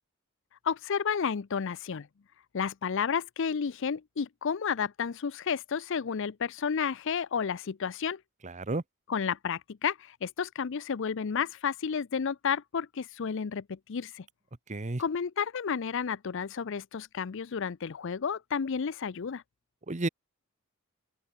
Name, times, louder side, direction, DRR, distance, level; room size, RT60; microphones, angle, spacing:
voice 1, 0.6-2.1 2.5-8.2 9.1-14.3 15.0-19.4, left 6 dB, 60° left, 0.5 m, -31 dB
voice 2, 8.4-8.8 14.7-15.0 19.9-20.1, right 2 dB, 35° right, 1.0 m, -31 dB
open air
head